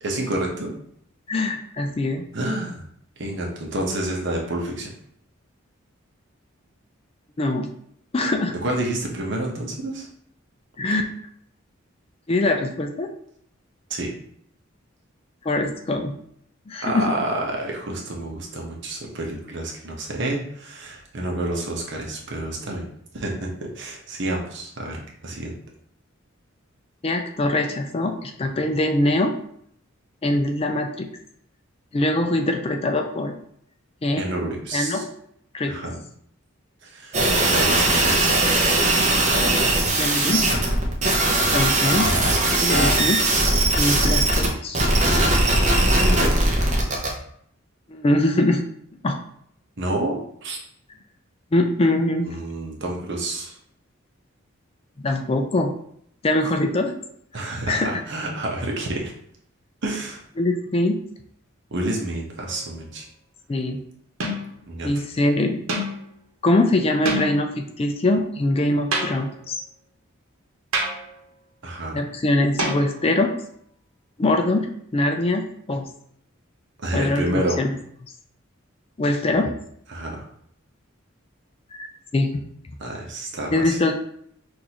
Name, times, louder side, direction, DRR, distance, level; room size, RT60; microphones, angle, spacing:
voice 1, 0.0-0.7 2.3-2.8 3.2-4.9 8.5-10.1 13.9-14.1 16.8-22.8 23.1-25.5 34.2-35.0 35.7-36.0 36.8-38.5 45.9-46.5 49.8-50.6 52.2-53.6 56.4-56.5 57.3-59.1 59.8-60.2 61.7-63.0 64.7-65.0 71.6-72.0 76.8-77.6 79.9-80.2 82.8-83.8, right 1 dB, 60° right, 0 dB, 1.0 m, -29 dB
voice 2, 1.3-2.2 7.4-7.7 8.1-8.6 10.8-11.1 12.3-13.1 15.4-16.1 16.7-17.0 27.0-29.3 30.2-31.1 31.9-33.3 34.0-34.2 34.7-35.1 35.5-35.7 39.9-40.6 41.5-42.1 42.6-43.2 43.7-44.8 47.9-48.6 49.0-49.2 51.5-52.3 55.0-55.7 56.2-56.9 57.7-58.0 60.4-61.0 63.5-63.8 64.8-65.6 66.4-69.5 71.9-73.3 74.2-74.7 74.9-75.9 76.9-77.7 79.0-79.5 81.7-82.3 83.5-83.9, left 2 dB, 30° left, 5 dB, 0.4 m, -22 dB
sound 1, 37.1-44.5 44.7-47.1, right 2 dB, 35° right, 0.8 m, -19 dB
sound 2, 62.4-62.8 64.2-64.6 65.7-66.0 67.0-67.5 68.9-69.5 70.7-71.2 72.6-73.2, right 1 dB, 80° right, 1.0 m, -28 dB
6.1 x 2.6 x 2.9 m, 0.67 s
head